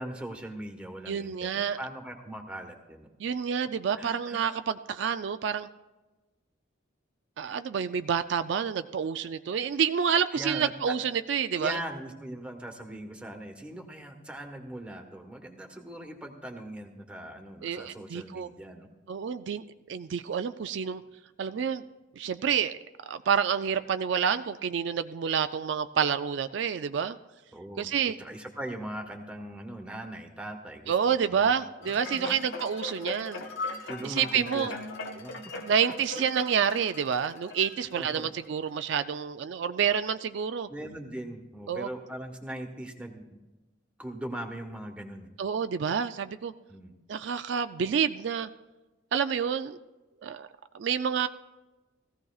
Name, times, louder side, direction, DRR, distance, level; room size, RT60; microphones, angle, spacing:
voice 1, 0.0-3.1 3.9-4.4 10.3-11.0 11.6-18.9 27.5-27.9 28.2-31.5 31.8-32.4 33.9-34.7 35.1-35.3 36.1-36.2 37.9-38.3 40.7-43.2 44.0-45.3 46.7-46.9, right 1 dB, 5° right, 3 dB, 1.2 m, -40 dB
voice 2, 1.1-1.8 3.2-5.7 7.4-11.8 17.6-18.5 19.1-21.0 21.4-21.8 22.2-22.8 23.1-27.2 27.8-28.2 30.9-33.4 34.0-34.7 35.7-40.7 41.7-41.9 45.4-46.5 47.1-48.5 49.1-49.8 50.2-50.5 50.7-51.3, right 7 dB, 60° right, 10 dB, 0.3 m, -28 dB
sound 1, 31.8-38.4 38.9-39.0, left 3 dB, 75° left, 1.2 m, -39 dB
17.5 x 15.0 x 2.4 m, 1.2 s
head